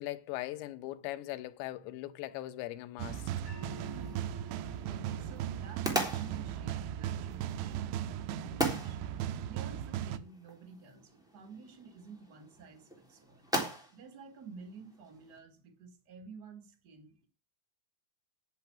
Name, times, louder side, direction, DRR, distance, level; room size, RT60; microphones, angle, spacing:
voice 1, 0.0-3.3, left 15 dB, 80° left, 3.0 m, -40 dB
sound 1, 3.0-10.2, right 10 dB, 85° right, 3.1 m, -37 dB
sound 2, 3.5-9.6, left 2 dB, 30° right, 5.4 m, -56 dB
sound 3, 3.7-15.4, right 1 dB, ahead, 2.5 m, -40 dB
voice 2, 3.9-4.6 4.9-9.0 9.5-13.5 13.9-17.3, right 4 dB, 45° right, 1.3 m, -52 dB
10.5 x 5.9 x 8.5 m
omnidirectional pair, 5.3 m